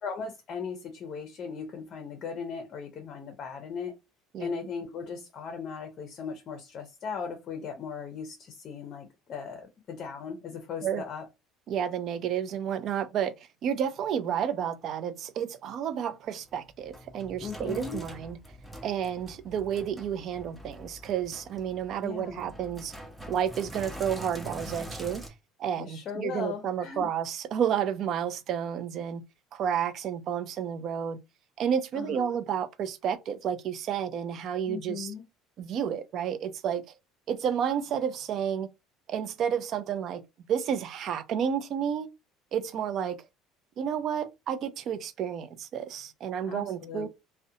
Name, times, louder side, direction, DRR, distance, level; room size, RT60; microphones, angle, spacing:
voice 1, 0.0-3.9 4.4-11.3 17.4-18.0 22.0-22.5 25.8-27.1 31.9-32.3 34.7-35.2 46.4-47.1, left 6 dB, 45° left, 0.5 m, -38 dB
voice 2, 11.7-13.3 13.6-18.4 18.8-22.9 23.3-25.2 25.6-29.2 29.5-31.2 31.6-35.1 35.6-36.8 37.3-38.7 39.1-40.2 40.5-42.1 42.5-43.2 43.8-47.1, right 8 dB, 50° right, 0.4 m, -31 dB
Sink (filling or washing), 16.5-25.3, right 1 dB, 5° right, 0.6 m, -44 dB
2.5 x 2.1 x 2.7 m
cardioid pair, 130°, 0 cm